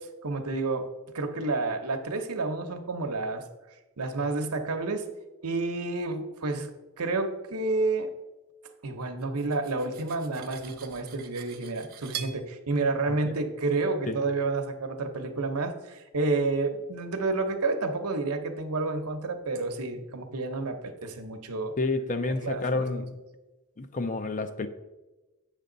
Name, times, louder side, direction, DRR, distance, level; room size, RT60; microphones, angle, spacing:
voice 1, 0.2-0.9 1.1-3.4 4.0-5.1 5.4-6.7 7.0-8.1 8.8-21.7 22.4-22.9, right 3 dB, 85° right, 0.9 m, -30 dB
Cutlery silverware, 9.2-12.4, right 9 dB, 45° right, 0.8 m, -43 dB
voice 2, 21.8-23.1 23.8-24.7, left 3 dB, 35° left, 0.5 m, -29 dB
8.5 x 6.7 x 3.9 m
head